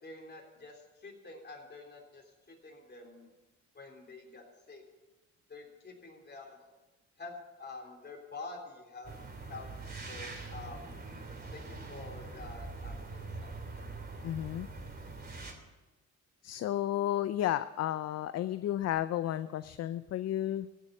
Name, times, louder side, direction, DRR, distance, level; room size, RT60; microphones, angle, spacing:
voice 1, 0.0-3.3 3.7-4.8 5.5-6.6 7.2-9.1 9.5-11.0 11.5-13.6, left 3 dB, 35° left, 0 dB, 3.5 m, -48 dB
sound 1, 9.0-15.5, right 3 dB, 30° right, 2.9 m, -43 dB
voice 2, 14.2-14.7 16.4-20.7, left 12 dB, 55° left, 13 dB, 0.5 m, -32 dB
15.0 x 6.5 x 9.2 m, 1.1 s
cardioid pair, 90°, 30 cm